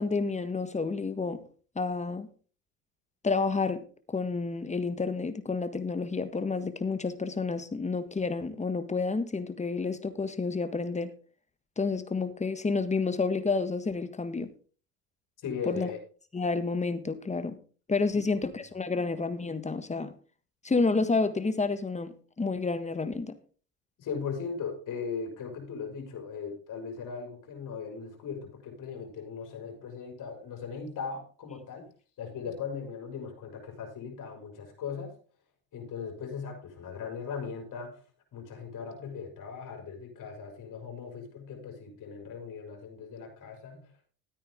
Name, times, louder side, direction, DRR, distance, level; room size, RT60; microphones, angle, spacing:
voice 1, 0.0-1.4 1.7-2.3 3.2-11.1 11.8-14.5 15.7-15.9 16.3-17.6 17.9-20.1 20.6-23.4, left 4 dB, 15° left, 10 dB, 1.5 m, -30 dB
voice 2, 15.4-16.0 24.0-31.9 32.2-35.1 35.7-38.0 38.3-43.9, left 6 dB, 50° left, 3 dB, 5.2 m, -38 dB
13.5 x 9.1 x 3.7 m, 0.39 s
hypercardioid pair, 75°, 40 cm